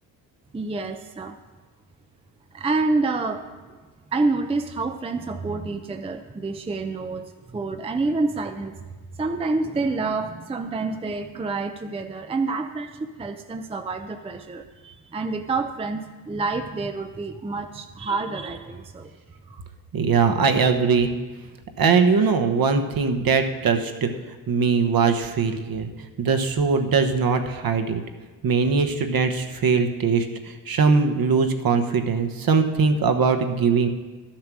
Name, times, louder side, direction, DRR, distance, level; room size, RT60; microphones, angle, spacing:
voice 1, 0.5-1.4 2.5-3.5 4.1-8.8 9.2-19.1 19.5-19.6, right 3 dB, 15° right, 6 dB, 0.6 m, -28 dB
voice 2, 19.9-21.1 21.8-24.1 24.5-25.9 26.2-28.0 28.4-33.9, right 5 dB, 45° right, 6 dB, 1.2 m, -21 dB
12.0 x 7.4 x 6.2 m, 1.3 s
cardioid pair, 90°, 47 cm